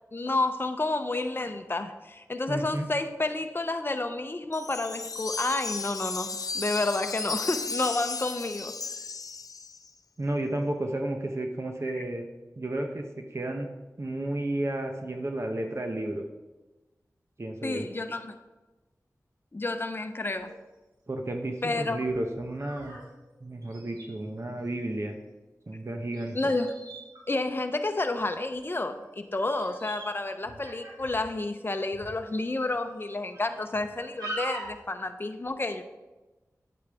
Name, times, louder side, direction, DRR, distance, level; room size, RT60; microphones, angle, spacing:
voice 1, 0.1-8.7 11.9-12.0 17.6-18.3 19.5-20.5 21.6-22.0 26.3-26.7 27.3-35.8, left 2 dB, 35° left, 7 dB, 0.7 m, -30 dB
voice 2, 2.5-2.9 10.2-12.3 12.6-13.7 14.0-16.3 17.4-17.9 21.1-23.0 23.4-25.1 25.7-26.4, right 1 dB, 45° right, 4 dB, 0.9 m, -32 dB
Wind chime, 4.5-9.9, left 4 dB, 70° left, 0.5 m, -35 dB
sound 1, 20.3-20.5 21.1-21.2 22.0-23.0 23.3-23.4 23.6-24.1 26.1-28.2 28.9-29.1 29.3-30.2 30.4-31.3 31.9-32.1 32.7-32.8 33.3-33.8 34.2-34.8, right 1 dB, 90° right, 2.4 m, -41 dB
8.6 x 8.4 x 3.5 m, 1.1 s
wide cardioid pair, 50°, 6 cm